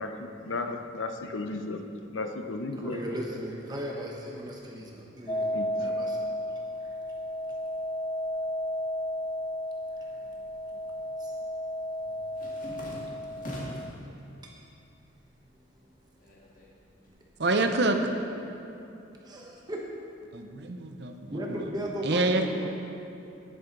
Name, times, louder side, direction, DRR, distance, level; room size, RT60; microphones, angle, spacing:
voice 1, 0.0-1.8 2.1-3.0 5.5-5.7, left 3 dB, 90° left, 6 dB, 0.7 m, -34 dB
voice 2, 2.8-6.2 6.8-7.0 10.0-10.3 10.7-10.8 11.2-11.4 14.4-14.6 17.0-17.3 19.2-20.0 21.3-22.7, equal, 20° right, -1 dB, 0.9 m, -37 dB
sound 1, 5.3-13.9, left 1 dB, 25° left, 0.3 m, -33 dB
sound 2, 10.6-10.9 11.2-14.0 14.5-15.1 15.4-17.1, equal, 45° left, 2.0 m, -43 dB
voice 3, 17.4-18.0 20.3-21.6 22.0-22.4, right 2 dB, 60° right, 6 dB, 0.7 m, -27 dB
11.0 x 10.0 x 3.9 m, 2.7 s
head